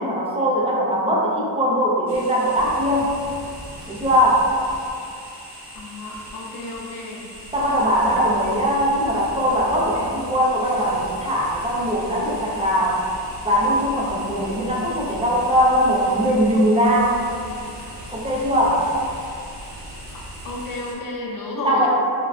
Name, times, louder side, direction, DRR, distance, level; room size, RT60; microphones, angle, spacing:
voice 1, 0.0-3.2 3.9-4.5 7.5-13.1 13.4-17.2 18.1-18.9 21.6-21.9, equal, 15° right, -5 dB, 0.4 m, -20 dB
sound 1, 2.1-21.0, right 1 dB, 65° right, 0.8 m, -39 dB
voice 2, 5.7-7.2 20.4-21.9, left 2 dB, 50° left, -2 dB, 0.5 m, -31 dB
3.2 x 2.2 x 2.3 m, 2.5 s
cardioid pair, 95°, 45 cm